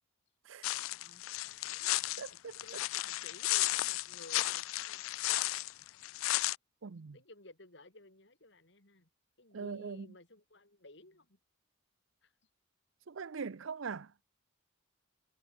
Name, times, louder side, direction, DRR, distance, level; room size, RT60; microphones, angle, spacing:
sound 1, 0.6-6.6, left 18 dB, 80° left, 0.3 m, -34 dB
voice 1, 1.0-1.9 2.3-6.0 7.1-9.1 9.4-11.4 12.2-12.3, left 2 dB, 55° left, 3.9 m, -57 dB
voice 2, 2.2-2.5 6.8-7.2 9.5-10.1 13.1-14.1, right 5 dB, 70° right, 0.6 m, -41 dB
head